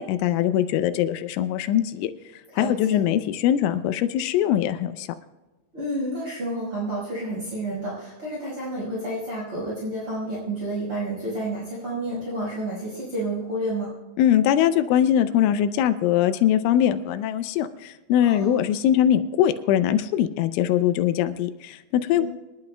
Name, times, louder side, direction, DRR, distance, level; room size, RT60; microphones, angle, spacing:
voice 1, 0.0-2.1 2.5-5.1 14.2-22.3, left 10 dB, 85° left, 10 dB, 3.0 m, -22 dB
voice 2, 2.5-3.1 5.7-14.0 18.2-18.6 22.1-22.3, right 1 dB, 30° right, -6 dB, 5.7 m, -30 dB
27.5 x 11.5 x 2.3 m, 1.1 s
omnidirectional pair, 5.6 m